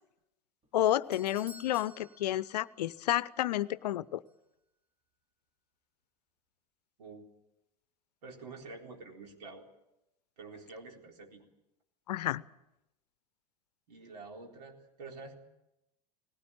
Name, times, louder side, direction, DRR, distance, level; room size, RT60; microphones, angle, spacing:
Doorbell, 0.6-3.2 3.4-3.5 4.3-4.4, right 1 dB, 30° right, 3.1 m, -55 dB
voice 1, 0.7-4.2 12.1-12.4, left 13 dB, 75° left, 19 dB, 0.7 m, -30 dB
voice 2, 8.2-9.7 10.4-11.4 13.9-15.4, right 3 dB, 75° right, 1 dB, 4.0 m, -48 dB
19.5 x 17.5 x 8.8 m, 0.89 s
hypercardioid pair, 80°, 21 cm